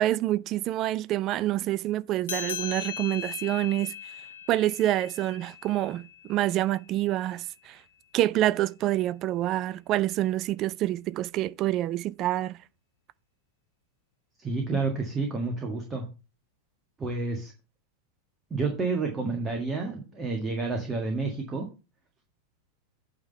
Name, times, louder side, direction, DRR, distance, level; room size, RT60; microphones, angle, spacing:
voice 1, 0.0-3.9 4.5-7.8 8.1-12.6, right 14 dB, 35° right, 0.4 m, -27 dB
sound 1, 2.2-7.1, left 8 dB, 65° left, 1.2 m, -39 dB
voice 2, 14.4-16.0 17.0-17.5 18.5-21.7, right 3 dB, 20° right, 1.6 m, -29 dB
8.8 x 3.7 x 6.6 m
figure-of-eight pair, 90°, 0 cm